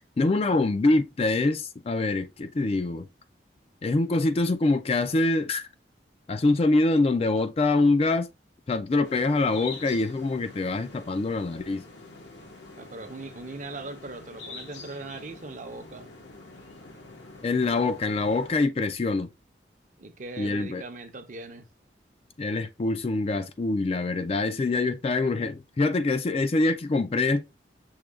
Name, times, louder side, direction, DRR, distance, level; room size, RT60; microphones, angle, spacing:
voice 1, 0.2-3.1 3.8-5.7 6.3-8.3 8.7-11.8 17.4-19.3 20.4-20.8 22.4-27.4, left 2 dB, 35° left, 0.4 m, -24 dB
sound 1, 9.0-18.7, left 3 dB, 85° left, 1.2 m, -45 dB
voice 2, 12.8-16.1 20.0-21.7, right 3 dB, 45° right, 0.7 m, -40 dB
6.3 x 2.3 x 3.4 m
head